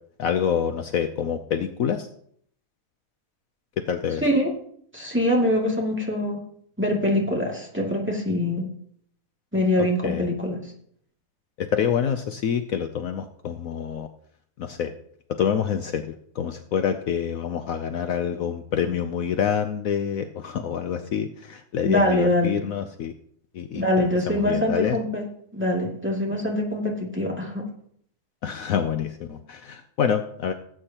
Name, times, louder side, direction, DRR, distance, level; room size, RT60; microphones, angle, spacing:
voice 1, 0.2-2.1 3.8-4.2 9.8-10.3 11.6-14.1 14.6-14.9 15.4-23.1 23.5-25.0 28.4-30.5, left 8 dB, 65° left, 8 dB, 1.0 m, -27 dB
voice 2, 4.2-4.5 4.9-6.4 6.8-8.7 9.5-10.6 21.8-22.6 23.7-25.2 25.5-27.6, left 1 dB, 5° right, -3 dB, 2.3 m, -23 dB
17.5 x 8.4 x 2.9 m, 0.65 s
omnidirectional pair, 1.6 m